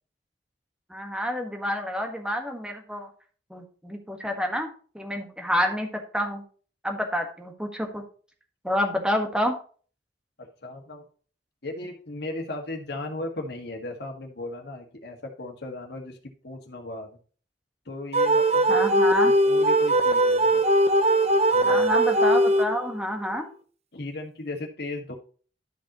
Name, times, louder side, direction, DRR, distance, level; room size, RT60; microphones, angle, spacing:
voice 1, 0.9-3.1 3.5-4.7 4.9-5.9 6.1-6.4 6.8-8.0 8.6-9.6 18.7-19.3 21.6-23.5, equal, 5° right, 3 dB, 1.5 m, -28 dB
voice 2, 10.4-11.1 11.6-17.1 17.9-18.7 19.2-20.6 21.5-21.9 23.9-25.1, left 2 dB, 65° left, 3 dB, 1.8 m, -36 dB
sound 1, 18.1-23.0, right 1 dB, 35° right, 0.7 m, -20 dB
12.0 x 5.4 x 3.0 m, 0.40 s
head